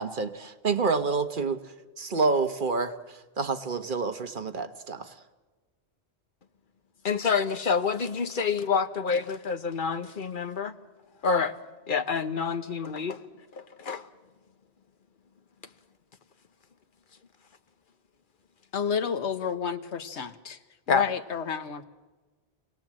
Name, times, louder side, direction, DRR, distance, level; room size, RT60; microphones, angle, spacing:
voice 1, 0.0-1.6 2.0-2.9 3.4-5.1, right 4 dB, 50° right, 1.2 m, -28 dB
voice 2, 7.0-10.7 11.2-11.5 11.9-13.2 13.5-14.1 20.9-21.0, left 5 dB, 50° left, 1.2 m, -27 dB
voice 3, 18.7-20.6 20.9-21.8, left 6 dB, 85° left, 1.3 m, -30 dB
28.5 x 18.5 x 7.5 m
omnidirectional pair, 1.1 m